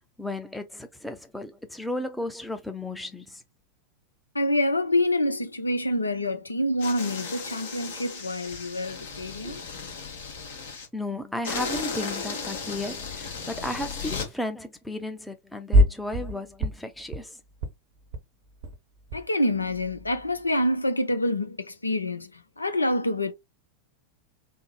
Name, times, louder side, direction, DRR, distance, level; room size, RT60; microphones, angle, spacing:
voice 1, 0.2-3.4 9.4-9.6 10.9-17.4, left 1 dB, 5° left, 0.6 m, -34 dB
voice 2, 4.3-9.6 19.1-23.3, left 1 dB, 80° left, 0.5 m, -27 dB
sound 1, 6.8-10.9 11.4-14.3, left 5 dB, 60° left, 1.1 m, -35 dB
sound 2, 15.7-16.3 16.6-17.3 17.5-17.7 18.0-18.2 18.5-19.3 19.5-20.5, equal, 50° right, 0.7 m, -25 dB
3.5 x 2.0 x 3.0 m
figure-of-eight pair, 90°, 0 cm